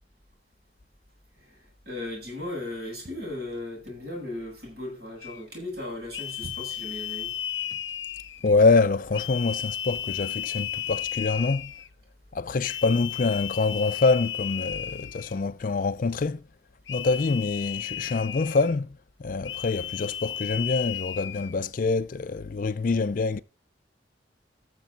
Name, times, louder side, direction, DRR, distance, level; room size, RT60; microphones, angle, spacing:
voice 1, 1.9-7.3, left 1 dB, 55° right, 7.3 m, -36 dB
sound 1, 3.0-4.3 5.8-7.0 7.3-7.9 8.4-8.7 9.1-9.4 9.8-10.2 10.5-10.8, right 2 dB, 35° right, 0.9 m, -49 dB
sound 2, 5.2-5.4 6.1-8.5 9.1-11.9 12.6-15.4 16.9-18.8 19.4-21.5, left 10 dB, 80° left, 0.7 m, -34 dB
voice 2, 8.4-11.7 12.3-16.4 16.9-18.9 19.2-23.4, left 4 dB, 45° left, 0.4 m, -25 dB
14.5 x 6.8 x 3.9 m
head